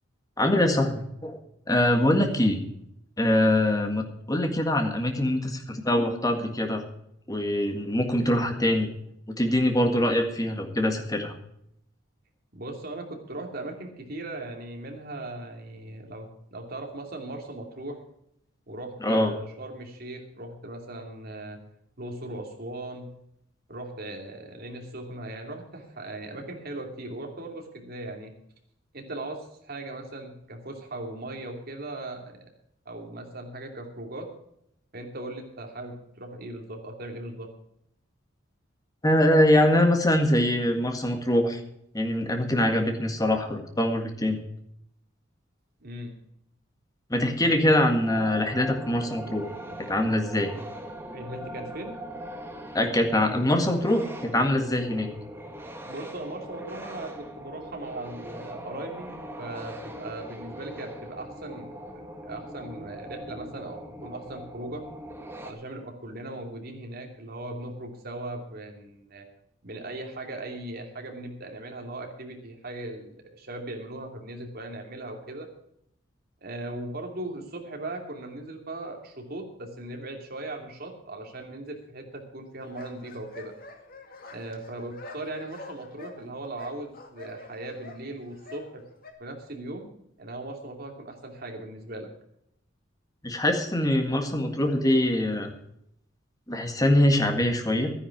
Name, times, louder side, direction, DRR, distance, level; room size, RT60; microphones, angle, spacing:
voice 1, 0.4-1.4 1.7-2.6 3.2-6.8 7.3-8.9 9.4-11.3 19.0-19.3 39.0-41.6 41.9-44.4 47.1-49.5 49.8-50.5 52.7-55.1 93.2-95.5 96.5-97.9, left 1 dB, 20° left, 4 dB, 1.8 m, -23 dB
voice 2, 12.5-18.0 18.7-21.6 22.0-23.1 23.7-28.3 28.9-32.4 32.8-34.3 34.9-37.5 45.8-46.1 47.7-47.8 51.1-51.9 55.9-61.7 62.2-64.8 65.4-69.2 69.6-75.5 76.4-83.5 84.3-88.8 89.2-89.9 90.2-92.1, right 2 dB, 50° right, 2 dB, 2.7 m, -38 dB
sound 1, 47.9-65.5, right 1 dB, 10° right, 1.6 m, -41 dB
sound 2, 82.6-89.1, left 3 dB, 50° left, 2.1 m, -46 dB
12.5 x 10.0 x 5.9 m, 0.75 s
head